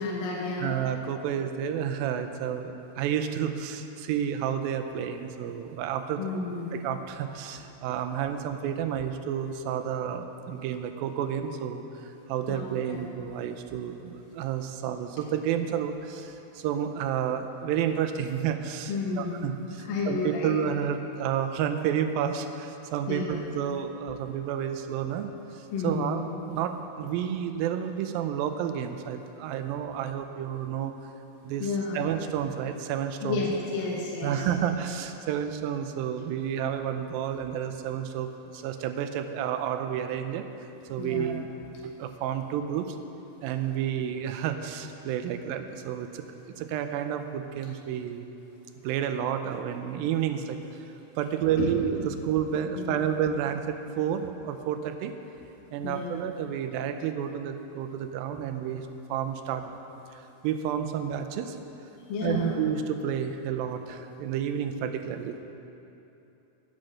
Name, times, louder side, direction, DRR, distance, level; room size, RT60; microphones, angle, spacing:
voice 1, 0.0-0.8 6.2-6.7 12.5-13.0 18.9-19.5 19.8-20.6 23.1-23.4 25.7-26.2 31.6-32.1 33.2-34.5 41.0-41.3 51.6-51.7 52.8-53.0 55.8-56.2 62.1-62.5, left 4 dB, 75° left, -3 dB, 2.9 m, -31 dB
voice 2, 0.6-6.2 6.7-26.2 26.5-30.9 31.4-31.7 31.9-33.4 34.2-40.5 40.9-41.5 41.8-43.0 43.4-48.3 48.8-55.1 55.7-59.8 60.1-61.6 62.2-65.4, right 9 dB, 90° right, 8 dB, 2.4 m, -30 dB
10.5 x 8.9 x 6.4 m, 2.9 s
omnidirectional pair, 4.1 m